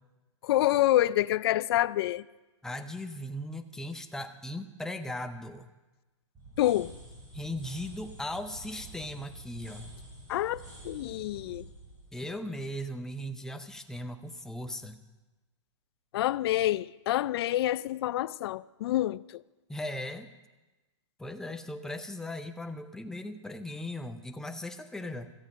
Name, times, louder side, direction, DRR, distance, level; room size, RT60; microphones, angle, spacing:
voice 1, 0.4-2.2 6.6-7.0 10.3-11.7 16.1-19.4, left 14 dB, 50° left, 0.4 m, -27 dB
voice 2, 2.6-5.7 7.3-9.9 12.1-15.0 19.7-20.3 21.2-25.3, left 1 dB, 5° left, 0.7 m, -38 dB
sound 1, 6.3-13.2, right 2 dB, 25° right, 6.6 m, -49 dB
16.5 x 13.5 x 5.3 m
hypercardioid pair, 145°, 16 cm